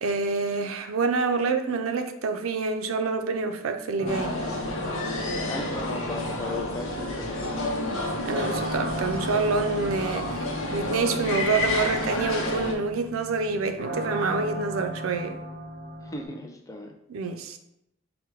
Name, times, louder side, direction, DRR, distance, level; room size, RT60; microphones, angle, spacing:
voice 1, 0.0-4.4 8.2-15.4 17.1-17.6, right 4 dB, 85° right, 0.4 m, -27 dB
sound 1, 4.0-16.2, equal, 50° right, 0.6 m, -37 dB
sound 2, 4.1-12.7, left 1 dB, 75° left, 0.8 m, -30 dB
voice 2, 5.5-7.4 16.0-16.9, left 2 dB, 15° left, 0.3 m, -36 dB
4.6 x 2.2 x 4.4 m
head